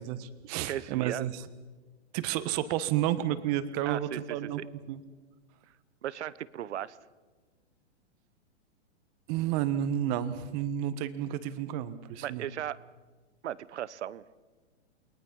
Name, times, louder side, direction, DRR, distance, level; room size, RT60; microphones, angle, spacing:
voice 1, 0.0-1.4 2.1-4.6 4.9-5.0 9.3-12.4, right 11 dB, 35° right, 12 dB, 1.5 m, -31 dB
voice 2, 0.7-1.3 3.8-4.5 6.0-7.0 12.2-12.8 13.4-14.2, right 11 dB, 75° right, 19 dB, 1.0 m, -36 dB
28.5 x 21.5 x 5.5 m, 1.3 s
hypercardioid pair, 150°, 35 cm